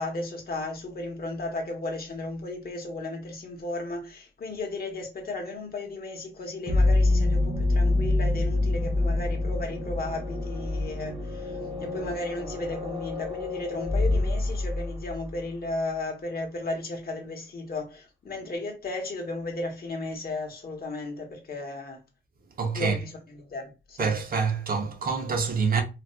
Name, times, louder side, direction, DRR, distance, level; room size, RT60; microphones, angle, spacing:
voice 1, 0.0-22.0 22.7-24.1, left 2 dB, 50° left, 1.0 m, -34 dB
sound 1, 6.7-15.3, left 2 dB, 25° right, 1.2 m, -26 dB
voice 2, 22.6-23.0 24.0-25.8, right 5 dB, 45° right, 0.6 m, -26 dB
4.0 x 2.2 x 2.2 m
wide cardioid pair, 155°, 20 cm